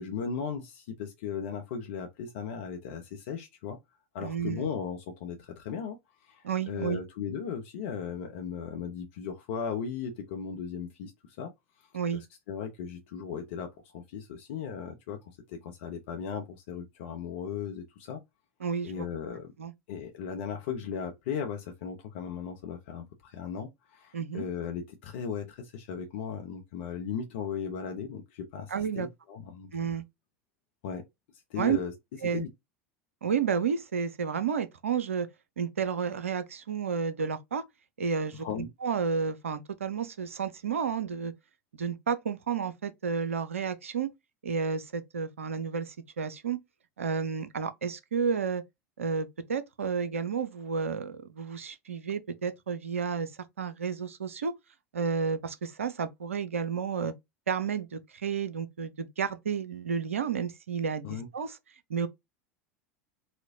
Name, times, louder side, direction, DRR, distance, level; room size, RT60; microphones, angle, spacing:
voice 1, 0.0-3.8 4.1-11.5 11.8-11.9 12.1-15.2 15.5-18.2 18.8-19.5 19.9-30.0 30.8-31.1 31.5-31.9 32.3-32.5 38.4-38.7 61.0-61.3, left 7 dB, 60° left, 0.7 m, -37 dB
voice 2, 4.2-4.7 6.4-7.0 11.9-12.2 18.6-19.1 19.6-19.7 24.1-24.4 28.7-29.1 29.7-30.0 31.6-31.8 32.2-32.4 33.2-35.3 35.6-37.6 38.0-41.3 41.8-44.1 44.4-46.6 47.0-48.6 49.0-53.3 53.6-54.5 54.9-57.1 57.5-61.6 61.9-62.1, right 6 dB, 75° right, 0.5 m, -31 dB
4.2 x 2.1 x 2.6 m
figure-of-eight pair, 80°, 7 cm